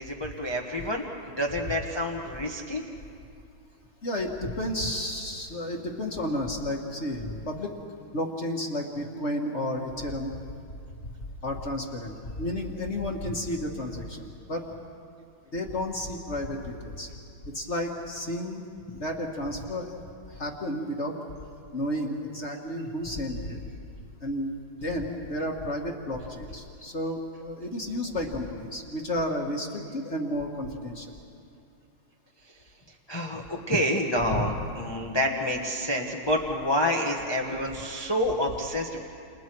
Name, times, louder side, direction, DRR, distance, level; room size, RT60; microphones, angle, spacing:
voice 1, 0.0-2.8 32.4-32.6 33.1-39.0, equal, 15° left, 0 dB, 1.1 m, -28 dB
voice 2, 4.0-7.8 8.1-10.4 11.0-11.1 11.4-14.7 15.5-17.1 17.5-18.6 18.9-19.9 20.3-21.2 21.7-23.6 24.2-24.5 24.8-31.2 34.2-34.4 37.5-37.6, left 1 dB, 35° left, 1 dB, 1.8 m, -32 dB
29.5 x 29.0 x 4.7 m, 2.5 s
omnidirectional pair, 2.4 m